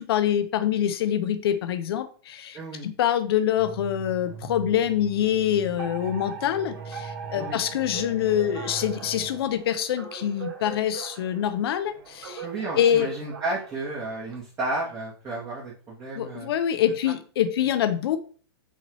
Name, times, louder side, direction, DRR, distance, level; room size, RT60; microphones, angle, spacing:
voice 1, 0.0-12.4 12.8-13.1 16.1-18.2, left 10 dB, 65° left, 10 dB, 0.7 m, -25 dB
voice 2, 2.5-2.9 7.3-7.6 12.4-16.5, right 2 dB, 20° right, -5 dB, 1.3 m, -32 dB
sound 1, 3.6-9.4, right 4 dB, 80° right, 1.7 m, -41 dB
Alarm, 5.8-14.3, right 6 dB, 60° right, 1.8 m, -41 dB
5.5 x 2.7 x 3.1 m, 0.41 s
hypercardioid pair, 125°, 14 cm